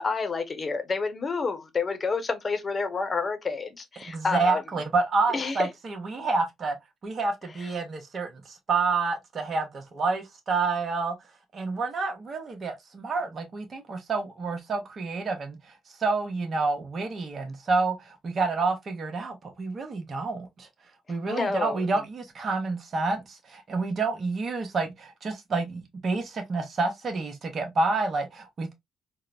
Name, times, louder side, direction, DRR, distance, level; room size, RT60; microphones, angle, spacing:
voice 1, 0.0-4.6 5.3-5.7 7.6-7.7 21.3-21.8, left 4 dB, 40° left, 0.8 m, -29 dB
voice 2, 4.1-6.8 7.0-11.1 11.5-15.6 16.0-20.7 21.1-28.7, right 3 dB, 45° right, 0.7 m, -29 dB
3.8 x 2.0 x 2.4 m
hypercardioid pair, 60°, 0 cm